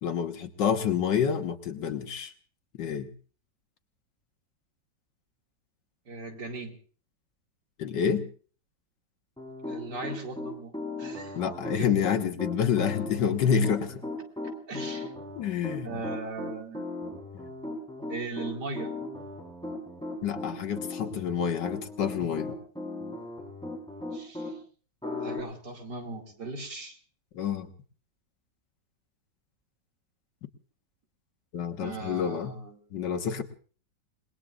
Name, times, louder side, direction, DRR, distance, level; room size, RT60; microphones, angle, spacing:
voice 1, 0.0-2.3 2.8-3.1 7.8-8.3 11.3-14.0 15.4-16.0 17.3-17.5 20.2-22.5 27.3-27.7 31.5-32.6 32.9-33.4, left 7 dB, 85° left, 7 dB, 1.9 m, -28 dB
voice 2, 6.1-6.7 9.7-10.7 11.0-11.4 11.8-11.9 14.7-15.1 15.8-16.9 18.1-18.9 24.1-24.6 25.2-27.0 31.8-32.8, right 3 dB, 70° right, 1 dB, 2.9 m, -38 dB
Piano, 9.4-24.5 25.0-25.4, left 2 dB, 5° left, 4.1 m, -37 dB
29.5 x 19.5 x 2.5 m, 0.40 s
omnidirectional pair, 1.9 m